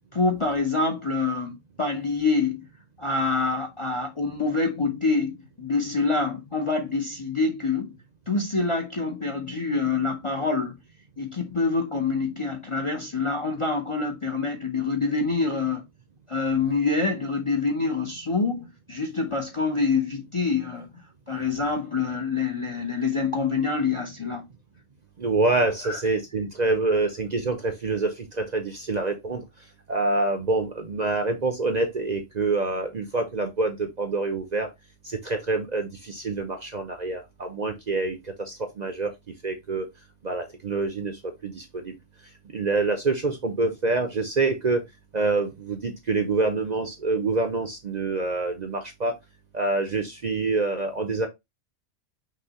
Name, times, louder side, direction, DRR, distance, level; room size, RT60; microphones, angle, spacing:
voice 1, 0.1-2.7 3.0-7.9 8.3-10.8 11.2-15.8 16.3-20.9 21.3-24.4 25.8-26.0, left 4 dB, 30° left, 0.6 m, -26 dB
voice 2, 25.2-29.4 29.9-34.7 35.0-39.1 39.4-39.9 40.2-41.9 42.5-44.8 45.1-49.1 49.5-51.3, right 3 dB, 40° right, 0.7 m, -26 dB
5.8 x 2.9 x 2.8 m
omnidirectional pair, 1.3 m